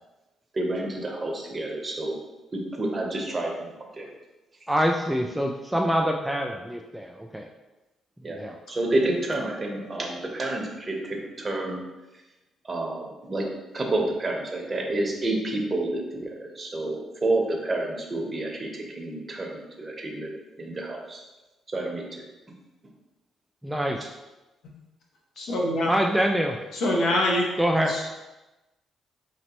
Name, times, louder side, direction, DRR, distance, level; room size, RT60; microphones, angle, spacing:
voice 1, 0.5-2.2 2.5-3.7 4.0-4.1 8.2-8.4 8.7-11.8 12.7-13.4 13.7-20.3 20.6-21.2 21.7-22.0, right 2 dB, 30° right, 0 dB, 0.9 m, -29 dB
voice 2, 4.7-7.5 8.3-8.6 23.6-24.1 25.9-26.6 27.6-27.9, equal, 5° right, 2 dB, 0.3 m, -25 dB
voice 3, 25.4-25.9 26.7-27.4 27.7-28.1, left 1 dB, 70° left, -2 dB, 1.1 m, -24 dB
5.0 x 3.1 x 3.0 m, 1.1 s
cardioid pair, 90°, 0 cm